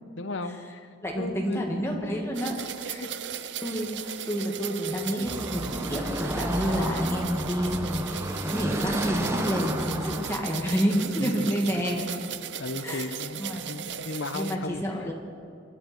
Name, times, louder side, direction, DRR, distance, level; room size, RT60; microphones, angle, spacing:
voice 1, 0.2-0.9 1.2-1.7 2.6-3.1 11.2-11.5 12.5-15.0, left 2 dB, 70° left, 9 dB, 0.9 m, -36 dB
voice 2, 1.0-3.0 3.6-12.1 12.8-13.1 13.4-13.7 14.3-15.1, equal, 15° left, -1 dB, 2.2 m, -29 dB
sound 1, 2.3-14.6, right 9 dB, 60° right, 0.6 m, -37 dB
Car passing by / Traffic noise roadway noise, 5.3-10.4, right 1 dB, 15° right, 0.9 m, -32 dB
25.0 x 11.5 x 4.5 m, 2.4 s
head